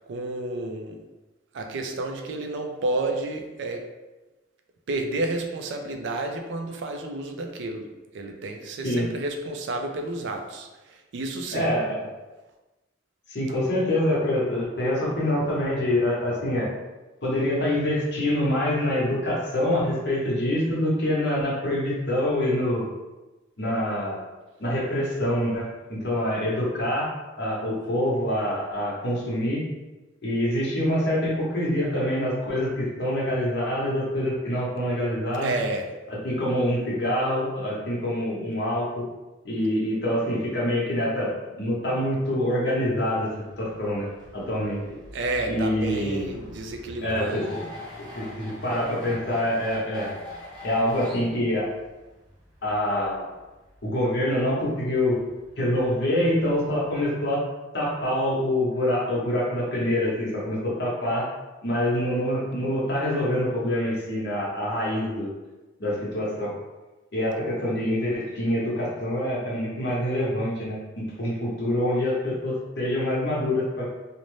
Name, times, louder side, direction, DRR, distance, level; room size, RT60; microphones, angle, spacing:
voice 1, 0.1-1.0 1.5-3.9 4.9-7.9 8.1-11.7 35.4-35.9 45.1-47.4, right 2 dB, 70° right, 4 dB, 0.3 m, -31 dB
voice 2, 11.5-12.0 13.3-16.7 17.2-22.9 23.6-24.2 24.6-27.1 27.4-29.6 30.2-35.5 36.1-39.0 39.4-41.3 41.6-43.3 43.6-44.1 44.3-44.8 45.5-46.3 47.0-47.6 48.1-50.1 50.6-51.7 52.6-53.3 53.8-55.2 55.6-57.4 57.7-61.3 61.6-65.3 65.8-66.5 67.1-73.9, left 1 dB, 60° left, -5 dB, 0.8 m, -25 dB
sound 1, 43.0-57.0, left 1 dB, 25° right, 0.6 m, -44 dB
2.6 x 2.0 x 3.0 m, 1.1 s
head